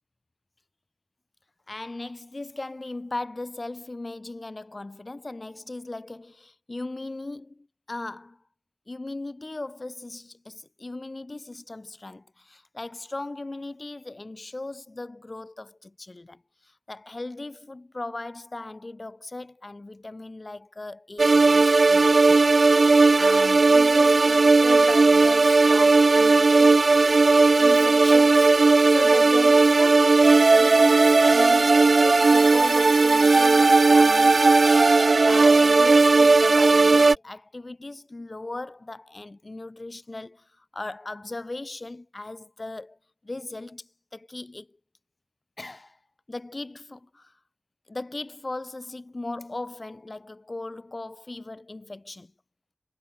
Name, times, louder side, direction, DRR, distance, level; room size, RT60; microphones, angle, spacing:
voice 1, 1.7-8.4 8.9-22.4 22.7-26.9 27.6-28.6 28.9-34.8 35.3-43.0 43.2-44.7 45.6-46.0 46.3-47.3 47.9-52.3, left 2 dB, 45° left, 3.6 m, -37 dB
sound 1, 21.2-37.1, right 3 dB, 65° right, 0.7 m, -17 dB
wide cardioid pair, 60°, 0 cm